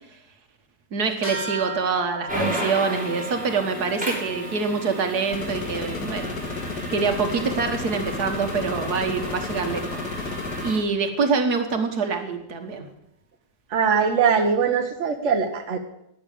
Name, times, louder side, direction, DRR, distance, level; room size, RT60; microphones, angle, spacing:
voice 1, 0.9-6.3 6.9-10.3 10.6-12.9, right 4 dB, 70° right, 6 dB, 1.9 m, -25 dB
sound 1, 1.2-11.0, right 2 dB, 15° left, 6.8 m, -40 dB
sound 2, 2.3-10.8, right 1 dB, 5° right, 4.2 m, -34 dB
sound 3, 5.3-10.7, left 3 dB, 85° left, 2.0 m, -32 dB
voice 2, 13.7-15.8, right 6 dB, 50° right, 5 dB, 1.4 m, -21 dB
12.0 x 8.6 x 8.5 m, 0.81 s
omnidirectional pair, 1.7 m